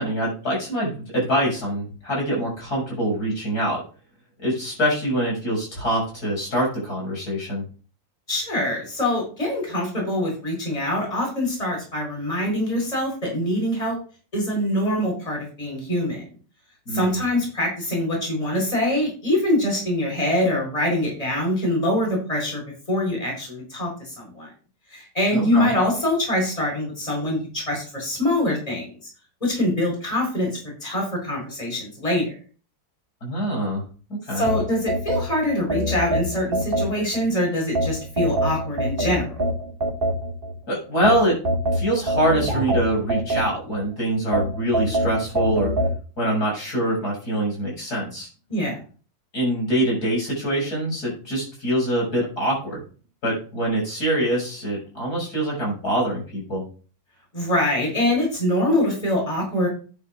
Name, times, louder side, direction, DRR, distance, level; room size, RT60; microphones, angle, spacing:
voice 1, 0.0-3.8 4.4-7.6 16.9-17.2 25.3-25.7 33.2-33.8 34.3-34.5 40.7-41.4 41.7-45.7 46.2-48.3 49.3-52.8 53.2-56.6, right 1 dB, 55° left, -3 dB, 6.9 m, -24 dB
voice 2, 8.3-14.0 14.3-16.2 16.9-22.6 22.9-24.5 24.9-28.9 29.4-30.5 30.8-32.3 34.3-39.4 48.5-48.8 57.3-59.7, left 1 dB, 20° left, -1 dB, 4.3 m, -24 dB
sound 1, 34.5-37.2 37.7-40.5 41.0-43.8 44.3-46.0, right 1 dB, 30° right, 1.5 m, -24 dB
11.0 x 10.0 x 2.5 m, 0.38 s
omnidirectional pair, 2.1 m